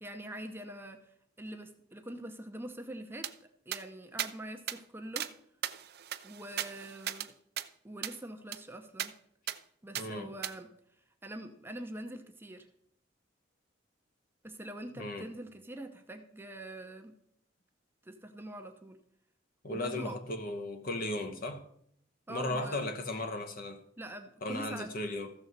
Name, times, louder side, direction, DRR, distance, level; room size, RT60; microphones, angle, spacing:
voice 1, 0.0-1.0 1.4-3.3 3.7-5.3 6.2-7.3 7.8-9.1 9.8-10.7 11.2-12.7 14.4-17.1 18.0-19.0 19.7-20.2 22.3-22.8 24.0-24.9, right 1 dB, 10° right, 0.7 m, -44 dB
sound 1, 3.2-3.3 3.7-3.8 4.2-4.3 4.7-4.8 5.2-5.3 5.6-7.3 7.6-7.7 8.0-8.2 8.5-8.6 9.0-9.1 9.5-9.6 9.9-10.1 10.4-10.5, right 12 dB, 55° right, 0.5 m, -37 dB
voice 2, 10.0-10.3 15.0-15.3 19.6-21.6 22.3-23.8 24.4-25.3, left 1 dB, 50° left, 1.0 m, -36 dB
14.5 x 6.3 x 4.0 m
head